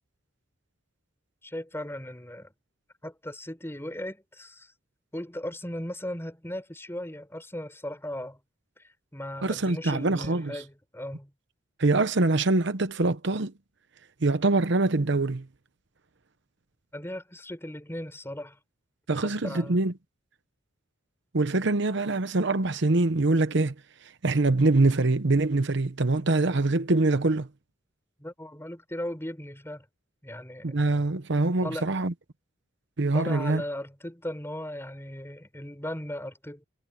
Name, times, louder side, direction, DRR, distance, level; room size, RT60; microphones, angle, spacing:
voice 1, 1.4-2.5 3.0-4.7 5.1-8.4 9.1-11.3 16.9-18.6 19.1-19.8 28.2-29.9 30.2-30.7 31.6-31.9 33.1-36.6, left 1 dB, 15° left, 5.7 m, -37 dB
voice 2, 9.4-10.5 11.8-13.5 14.2-15.4 19.1-19.9 21.3-23.7 24.2-27.5 30.6-32.1 33.0-33.6, right 2 dB, 65° right, 0.9 m, -24 dB
head